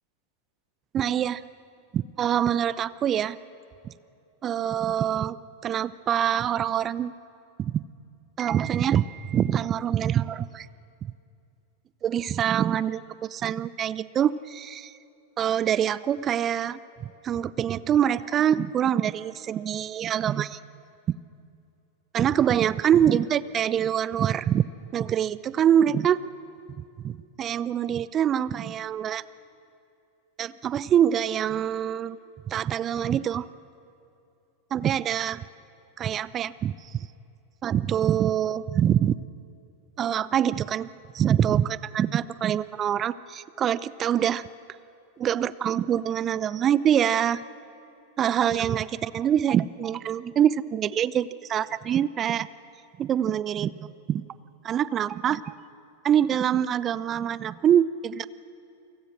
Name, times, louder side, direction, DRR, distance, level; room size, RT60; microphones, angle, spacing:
voice 1, 0.9-1.4 1.9-3.4 3.8-3.9 4.4-5.4 5.6-7.1 7.6-7.8 8.4-10.7 12.0-14.9 15.4-20.6 22.1-24.7 24.9-26.2 27.0-29.2 30.4-32.2 32.5-33.5 34.7-35.4 36.0-37.1 37.6-39.2 40.0-40.9 41.1-44.4 45.2-47.4 48.2-52.5 53.0-54.2 54.6-55.4 56.0-58.3, right 9 dB, 30° right, 18 dB, 0.6 m, -25 dB
29.5 x 23.5 x 6.4 m, 2.6 s
figure-of-eight pair, 90°, 0 cm